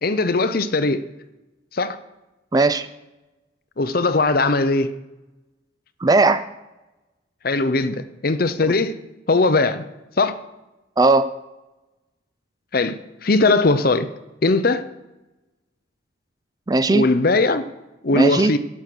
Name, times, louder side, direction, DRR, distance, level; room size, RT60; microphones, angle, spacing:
voice 1, 0.0-1.0 1.7-2.0 3.8-4.9 7.4-8.9 9.3-9.8 10.2-10.3 12.7-14.1 14.4-14.9 16.9-17.6 18.0-18.6, left 3 dB, 45° left, 0.6 m, -19 dB
voice 2, 2.5-2.9 6.0-6.5 8.6-8.7 11.0-11.3 16.7-17.1 18.1-18.5, right 3 dB, 20° right, 0.3 m, -17 dB
11.0 x 6.1 x 6.6 m
head